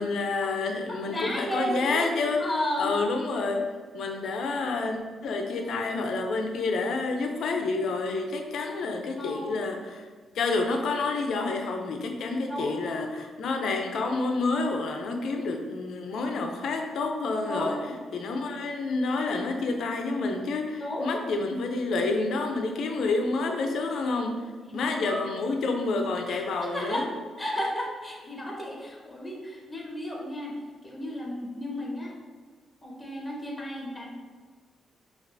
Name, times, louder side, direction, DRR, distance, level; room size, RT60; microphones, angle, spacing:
voice 1, 0.0-2.5 2.8-3.6 3.9-10.1 10.3-17.8 18.1-24.3 24.7-27.1, left 3 dB, 75° left, 3 dB, 0.5 m, -29 dB
voice 2, 0.9-2.0 2.4-2.9 9.2-9.6 12.5-12.8 17.4-17.9 20.8-21.2 24.6-25.2 26.3-27.0 27.4-30.5 30.8-32.2 32.8-34.1, left 1 dB, 15° left, -2 dB, 1.0 m, -33 dB
5.2 x 2.4 x 2.6 m, 1.5 s
cardioid pair, 80°, 0 cm